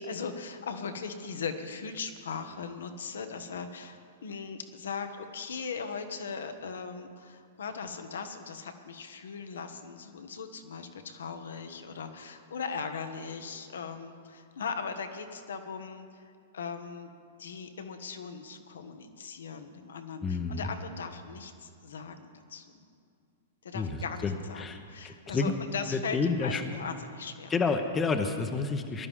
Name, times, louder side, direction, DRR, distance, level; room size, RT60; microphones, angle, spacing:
voice 1, 0.0-17.1 17.4-22.8 23.6-27.5, left 5 dB, 70° left, 7 dB, 1.2 m, -39 dB
voice 2, 20.2-20.7 23.7-25.5 25.9-26.6 27.5-29.1, left 4 dB, 20° left, 6 dB, 0.9 m, -30 dB
19.0 x 12.0 x 3.7 m, 2.3 s
figure-of-eight pair, 105°, 0 cm